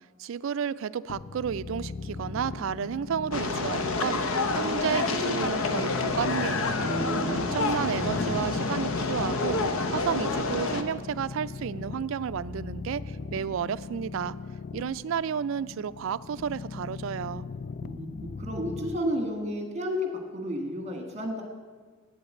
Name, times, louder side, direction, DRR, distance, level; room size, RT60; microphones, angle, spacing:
voice 1, 0.2-6.8 7.3-14.3 14.7-17.4, right 7 dB, 65° right, 16 dB, 0.3 m, -32 dB
sound 1, 1.1-19.0, left 4 dB, 40° left, 0.3 m, -39 dB
sound 2, 3.3-10.8, left 3 dB, 80° left, 0.9 m, -28 dB
voice 2, 6.8-7.9 17.8-20.0 20.3-21.4, equal, 30° right, 4 dB, 1.6 m, -32 dB
8.6 x 8.1 x 8.2 m, 1.5 s
head